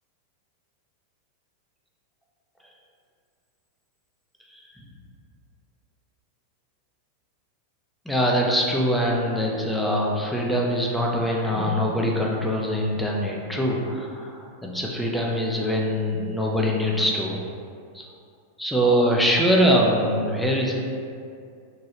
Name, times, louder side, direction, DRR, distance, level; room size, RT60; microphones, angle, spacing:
voice 1, 8.1-17.4 17.9-18.1 18.6-20.7, equal, ahead, -2 dB, 0.4 m, -23 dB
3.0 x 2.2 x 2.8 m, 2.3 s
figure-of-eight pair, 90°, 0 cm